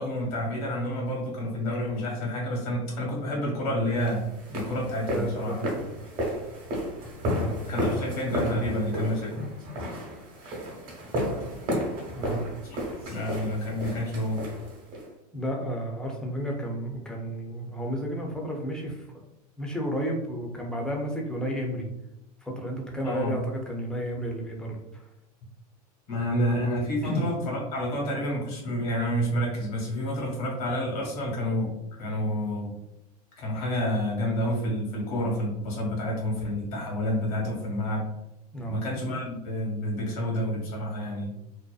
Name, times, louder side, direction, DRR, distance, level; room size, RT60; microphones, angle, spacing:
voice 1, 0.0-4.2 4.5-5.6 7.7-9.4 13.0-14.4 23.0-23.4 26.1-32.7 33.4-38.0 38.6-41.3, equal, 70° left, -2 dB, 1.2 m, -29 dB
sound 1, 4.0-15.1, equal, 45° right, 1.0 m, -32 dB
voice 2, 5.1-5.8 7.3-7.5 12.2-12.4 15.3-19.1 19.6-21.9 22.4-25.1 27.0-27.3 38.5-38.8, equal, 5° left, -1 dB, 0.5 m, -32 dB
2.7 x 2.1 x 2.3 m, 0.87 s
hypercardioid pair, 95°, 20 cm